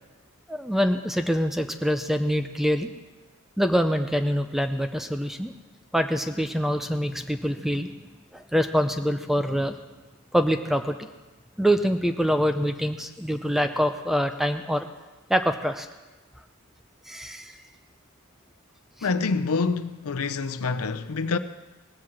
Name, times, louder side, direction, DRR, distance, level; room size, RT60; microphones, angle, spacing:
voice 1, 0.5-2.9 3.6-5.5 5.9-7.9 8.3-9.8 10.3-11.0 11.6-14.9 15.3-15.9 17.1-17.6, equal, ahead, 0.5 m, -25 dB
voice 2, 19.0-21.4, left 4 dB, 80° left, 0.7 m, -26 dB
18.0 x 7.7 x 7.2 m
head